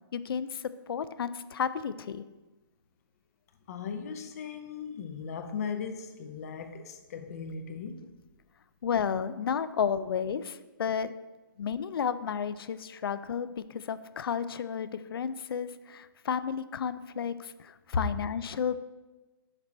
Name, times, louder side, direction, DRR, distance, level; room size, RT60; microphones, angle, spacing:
voice 1, 0.1-2.2 8.8-11.1 11.6-13.5 13.7-18.8, left 7 dB, 90° left, 14 dB, 0.4 m, -32 dB
voice 2, 3.7-8.1, left 6 dB, 40° left, 7 dB, 0.6 m, -38 dB
6.6 x 4.6 x 4.3 m, 1.2 s
hypercardioid pair, 165°, 12 cm